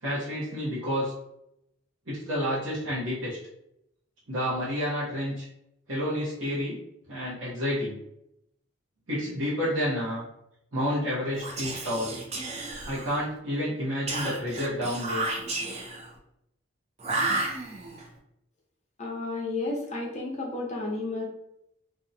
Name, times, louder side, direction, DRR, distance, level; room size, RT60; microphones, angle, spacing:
voice 1, 0.0-1.1 2.1-3.4 4.3-5.5 5.9-6.7 7.1-8.0 9.1-10.2 10.7-12.1 12.8-15.3, equal, 80° right, -9 dB, 0.8 m, -29 dB
Whispering, 11.3-13.3 14.1-16.1 17.0-18.0, right 2 dB, 30° right, 0.4 m, -32 dB
voice 2, 19.0-21.2, left 2 dB, 35° left, -3 dB, 0.6 m, -32 dB
2.6 x 2.1 x 2.6 m, 0.80 s
head